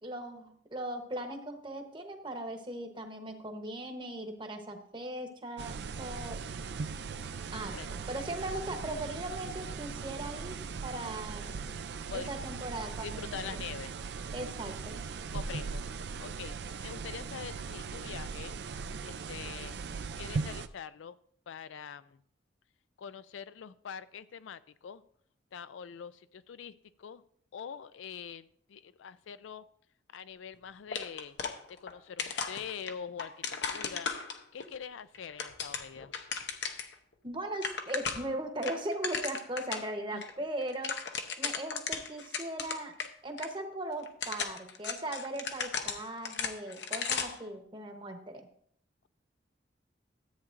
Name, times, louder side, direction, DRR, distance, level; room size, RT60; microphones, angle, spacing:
voice 1, 0.0-6.4 7.5-11.5 12.1-13.6 14.3-15.0 37.2-41.0 41.4-42.9 43.2-48.4, right 1 dB, 25° right, 5 dB, 1.0 m, -39 dB
sound 1, 5.6-20.7, right 5 dB, 60° right, 0.4 m, -39 dB
voice 2, 13.0-13.9 15.3-16.6 16.8-18.5 19.1-19.8 20.1-21.2 21.5-22.2 23.0-25.0 25.5-27.2 27.5-29.6 30.1-31.4 31.8-34.1 34.5-36.1 40.1-40.3, left 7 dB, 80° left, 15 dB, 0.4 m, -44 dB
sound 2, 30.9-31.9 32.2-34.7 35.1-36.9 37.3-37.4 37.5-38.3 38.6-39.9 40.2-40.3 40.6-43.1 43.4-43.5 44.0-47.5, left 6 dB, 65° left, 0.8 m, -36 dB
13.5 x 8.5 x 2.5 m, 0.66 s
head